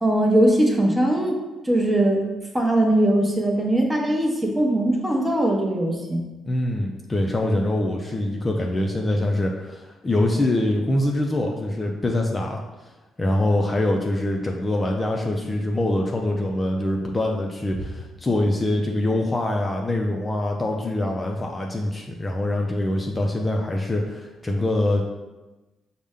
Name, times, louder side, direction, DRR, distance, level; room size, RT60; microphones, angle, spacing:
voice 1, 0.0-1.4 1.6-2.2 2.5-6.2, right 1 dB, 15° right, 0 dB, 0.7 m, -20 dB
voice 2, 6.5-12.6 13.2-25.0, left 1 dB, 25° left, 0 dB, 0.4 m, -24 dB
5.1 x 2.1 x 3.5 m, 1.1 s
cardioid pair, 90°, 0 cm